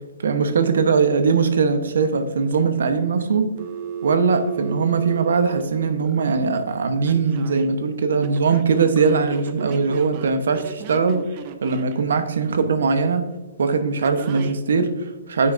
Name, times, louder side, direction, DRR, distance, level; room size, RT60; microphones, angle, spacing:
voice 1, 0.2-3.5 4.0-11.2 11.6-13.2 13.6-15.5, right 5 dB, 70° right, 9 dB, 0.9 m, -20 dB
Telephone, 3.6-6.3 7.0-7.7 8.2-12.0 14.0-14.6, right 8 dB, 25° right, 0.4 m, -35 dB
9.4 x 5.7 x 2.6 m, 1.1 s
hypercardioid pair, 175°, 0 cm